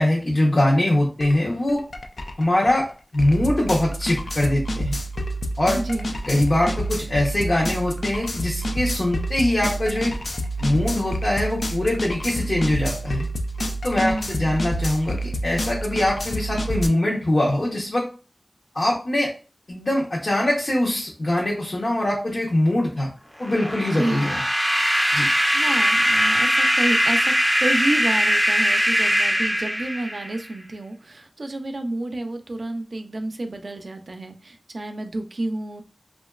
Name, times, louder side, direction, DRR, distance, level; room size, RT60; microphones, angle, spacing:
voice 1, 0.0-1.8 2.4-2.8 3.1-5.0 5.6-5.8 6.3-10.1 10.6-13.3 13.8-15.2 15.4-18.1 18.7-19.3 19.7-23.1 23.4-24.4 25.1-25.3, left 1 dB, 65° left, -4 dB, 0.8 m, -22 dB
sound 1, 1.2-1.4 1.7-16.9, right 1 dB, 80° left, 0.3 m, -28 dB
voice 2, 5.7-6.2 14.0-14.6 23.9-24.2 25.1-35.8, right 1 dB, 75° right, 6 dB, 0.4 m, -30 dB
sound 2, 23.4-30.5, equal, ahead, 0.4 m, -21 dB
2.9 x 2.4 x 2.3 m, 0.35 s
wide cardioid pair, 50°, 0 cm